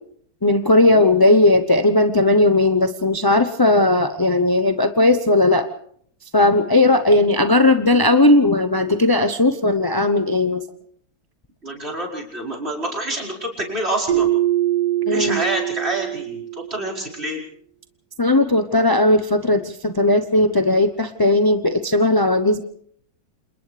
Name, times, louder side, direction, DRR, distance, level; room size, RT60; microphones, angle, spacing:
voice 1, 0.4-5.7 6.3-10.6 15.1-15.4 18.2-22.6, left 2 dB, 30° left, 7 dB, 0.4 m, -17 dB
voice 2, 11.6-14.3 15.1-17.4, right 1 dB, 35° right, -3 dB, 5.3 m, -27 dB
Keyboard (musical), 14.1-16.9, right 13 dB, 70° right, 1.9 m, -22 dB
29.0 x 27.5 x 3.4 m, 0.62 s
omnidirectional pair, 1.9 m